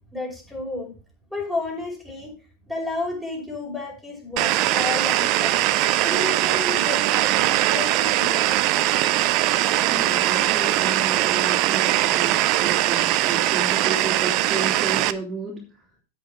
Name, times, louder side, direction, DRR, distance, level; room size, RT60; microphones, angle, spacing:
voice 1, 0.1-0.9 1.3-2.3 2.7-5.5 6.0-8.6, left 3 dB, 5° left, -2 dB, 5.2 m, -31 dB
sound 1, 4.4-15.1, right 15 dB, 45° right, 0.7 m, -21 dB
voice 2, 9.9-15.6, right 3 dB, 25° right, -2 dB, 3.0 m, -32 dB
8.7 x 8.2 x 4.7 m, 0.34 s
hypercardioid pair, 100°, 0 cm